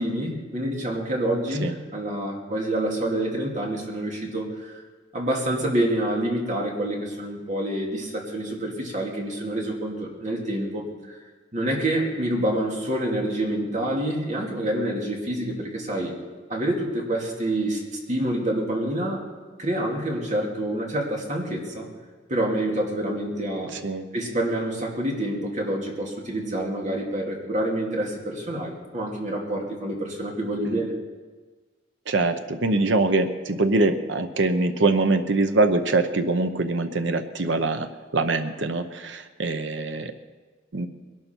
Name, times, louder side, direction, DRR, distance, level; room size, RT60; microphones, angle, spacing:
voice 1, 0.0-4.8 5.1-11.2 11.5-16.2 16.5-17.8 18.1-19.2 19.6-21.9 22.3-23.7 24.1-30.9, right 1 dB, 40° right, 0 dB, 2.6 m, -27 dB
voice 2, 23.7-24.1 30.7-30.8 32.1-37.9 38.1-40.1 40.7-40.9, right 2 dB, 75° right, 8 dB, 0.9 m, -23 dB
21.0 x 12.0 x 4.6 m, 1.4 s
head